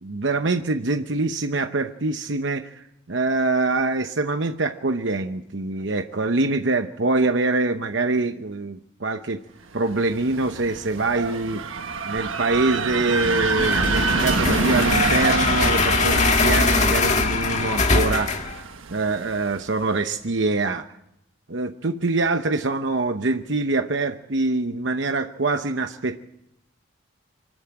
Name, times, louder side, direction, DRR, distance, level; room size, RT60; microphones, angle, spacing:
voice 1, 0.0-9.4 9.7-11.6 12.0-18.4 18.9-20.9 21.5-26.2, right 3 dB, 65° right, 7 dB, 0.9 m, -24 dB
sound 1, 9.9-19.7, right 3 dB, 85° right, 1.4 m, -27 dB
sound 2, 13.6-18.6, left 3 dB, 35° left, 1.9 m, -22 dB
24.5 x 13.5 x 8.7 m, 0.83 s
head